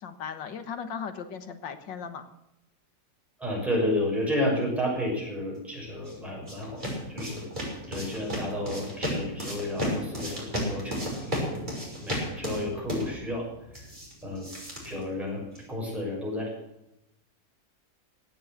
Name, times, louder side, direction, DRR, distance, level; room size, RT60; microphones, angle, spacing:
voice 1, 0.0-2.3, left 6 dB, 90° left, 9 dB, 2.1 m, -37 dB
voice 2, 3.4-7.5 7.9-11.7 12.0-13.5 13.7-13.8 14.2-14.5 14.8-16.5, left 1 dB, ahead, -3 dB, 6.7 m, -31 dB
sound 1, 5.7-15.7, equal, 25° right, 6.2 m, -34 dB
17.0 x 8.9 x 8.2 m, 0.84 s
omnidirectional pair, 1.9 m